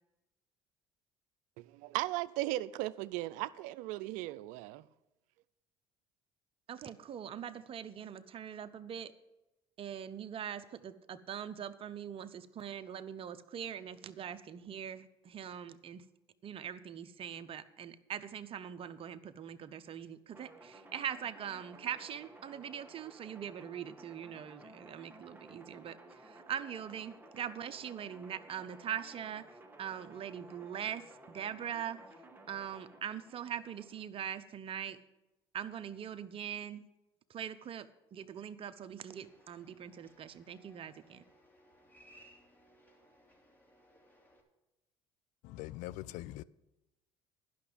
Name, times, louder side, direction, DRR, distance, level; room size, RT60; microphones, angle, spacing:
voice 1, 1.6-4.9, right 17 dB, 75° right, 0.5 m, -37 dB
voice 2, 6.7-9.1 9.8-16.0 16.4-32.0 32.5-35.0 35.5-36.9 37.3-41.2, right 9 dB, 45° right, 0.8 m, -42 dB
sound 1, 20.3-34.1, right 2 dB, 15° right, 1.7 m, -56 dB
sound 2, 39.1-44.4, equal, 15° left, 3.0 m, -63 dB
voice 3, 45.4-46.4, left 16 dB, 70° left, 0.4 m, -42 dB
11.0 x 5.9 x 8.7 m
supercardioid pair, 75°, 13 cm